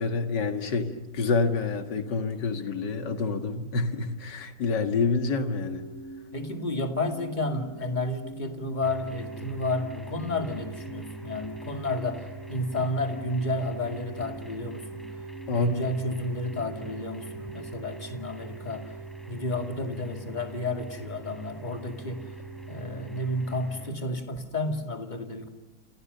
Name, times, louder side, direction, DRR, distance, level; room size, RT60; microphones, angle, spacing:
voice 1, 0.0-5.8 15.5-15.9, left 4 dB, 70° left, 7 dB, 2.5 m, -27 dB
sound 1, 5.5-24.0, right 2 dB, 50° left, 5.8 m, -44 dB
voice 2, 6.3-15.1 15.6-18.9 19.3-22.3 22.7-25.5, left 2 dB, 25° left, 5 dB, 2.4 m, -31 dB
sound 2, 8.8-23.9, right 4 dB, ahead, 4.6 m, -44 dB
29.0 x 28.5 x 6.8 m, 1.0 s
omnidirectional pair, 1.9 m